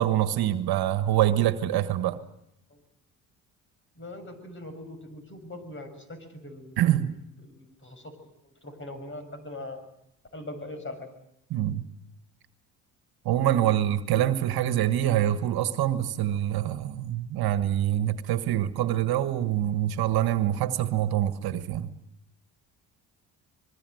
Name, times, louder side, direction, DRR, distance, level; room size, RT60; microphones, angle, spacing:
voice 1, 0.0-2.2 6.8-7.1 11.5-11.8 13.2-21.9, right 12 dB, 70° right, 1.6 m, -25 dB
voice 2, 4.0-7.1 7.4-8.1 8.4-9.8 10.3-11.1, left 1 dB, 30° left, 6.5 m, -41 dB
25.0 x 22.0 x 7.9 m
supercardioid pair, 65°, 39 cm